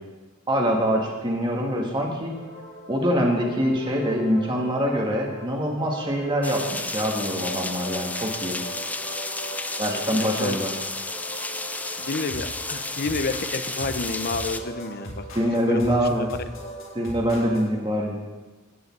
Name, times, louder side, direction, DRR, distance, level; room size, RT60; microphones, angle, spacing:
voice 1, 0.5-2.3 2.9-8.6 9.8-10.7 15.3-16.3 16.9-18.1, equal, 20° right, -1 dB, 1.6 m, -24 dB
sound 1, 2.3-17.6, right 1 dB, 65° left, 4.3 m, -40 dB
sound 2, 6.4-14.6, left 2 dB, 5° left, 0.5 m, -32 dB
voice 2, 10.1-10.6 12.0-16.1, left 3 dB, 50° left, 10 dB, 0.7 m, -30 dB
14.0 x 5.4 x 9.4 m, 1.3 s
head